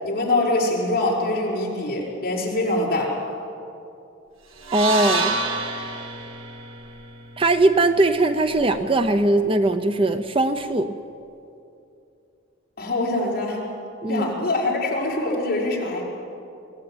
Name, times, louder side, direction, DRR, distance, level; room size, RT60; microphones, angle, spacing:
voice 1, 0.0-3.1 12.8-13.6 14.0-16.0, left 2 dB, 45° left, -4 dB, 5.6 m, -24 dB
sound 1, 4.6-8.8, right 2 dB, 85° right, 2.4 m, -29 dB
voice 2, 4.7-5.4 7.4-10.9 14.0-14.3, right 2 dB, 25° right, 8 dB, 0.6 m, -20 dB
23.5 x 16.5 x 9.1 m, 2.6 s
head